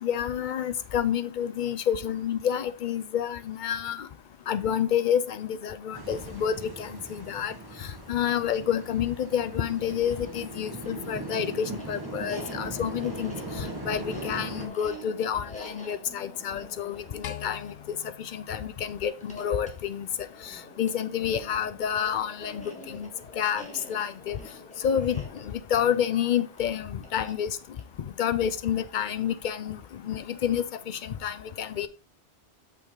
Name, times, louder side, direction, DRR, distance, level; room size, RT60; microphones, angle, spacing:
voice 1, 0.0-4.1 4.5-7.5 8.1-17.7 18.2-20.1 20.8-23.1 23.4-23.6 23.9-24.4 24.8-25.2 25.7-27.5 28.2-29.8 30.0-31.9, left 9 dB, 55° left, 0.6 m, -29 dB
sound 1, 5.9-14.7, right 2 dB, 20° right, 1.2 m, -39 dB
sound 2, 9.7-29.0, left 1 dB, 5° left, 1.6 m, -47 dB
sound 3, 17.2-19.6, left 11 dB, 90° left, 1.0 m, -43 dB
6.5 x 5.4 x 3.7 m
omnidirectional pair, 1.2 m